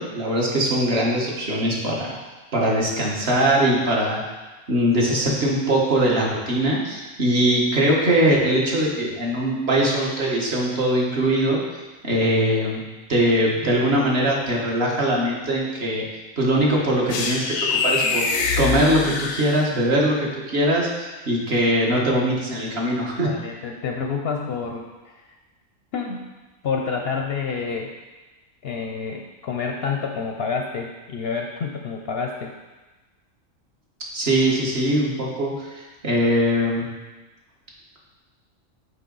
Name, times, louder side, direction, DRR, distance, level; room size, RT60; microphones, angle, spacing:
voice 1, 0.0-2.2 2.5-4.2 4.7-11.6 12.0-12.8 13.1-16.0 16.4-18.3 18.6-23.3 34.1-36.9, right 1 dB, 50° right, -3 dB, 1.5 m, -21 dB
sound 1, 17.1-20.0, left 4 dB, 90° left, 1.1 m, -24 dB
voice 2, 23.2-25.3 25.9-26.2 26.6-27.9 28.6-32.5, left 5 dB, 60° left, 2 dB, 0.7 m, -28 dB
6.4 x 5.3 x 3.9 m, 1.2 s
omnidirectional pair, 1.4 m